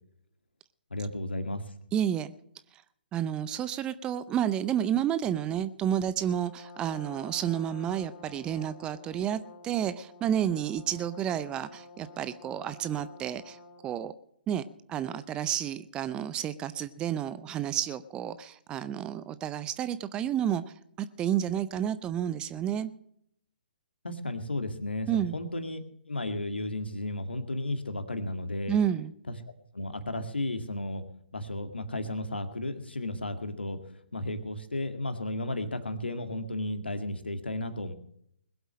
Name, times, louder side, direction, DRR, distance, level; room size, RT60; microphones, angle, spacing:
voice 1, 0.9-1.6 24.0-28.8 29.7-31.0 31.3-33.8 34.1-37.9, left 1 dB, 75° left, 9 dB, 2.1 m, -33 dB
voice 2, 1.9-2.3 3.1-13.6 13.8-14.1 14.5-20.6 21.0-22.9 25.1-25.3 28.7-29.1, right 10 dB, 15° right, 15 dB, 0.5 m, -30 dB
Brass instrument, 6.2-14.0, left 3 dB, 35° left, 2.7 m, -50 dB
21.0 x 8.0 x 6.3 m, 0.69 s
figure-of-eight pair, 130°, 6 cm